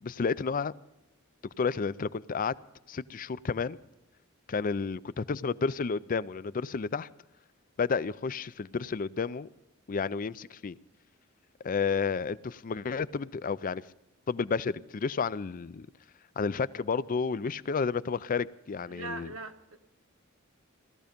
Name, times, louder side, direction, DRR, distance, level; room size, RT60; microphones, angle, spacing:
voice 1, 0.0-0.7 1.6-2.5 2.9-3.8 4.5-7.1 7.8-9.5 9.9-10.8 11.6-13.8 14.3-15.9 16.4-19.3, left 5 dB, 40° left, 0.4 m, -31 dB
voice 2, 18.9-19.8, right 2 dB, 70° right, 1.2 m, -40 dB
17.5 x 14.0 x 5.2 m
head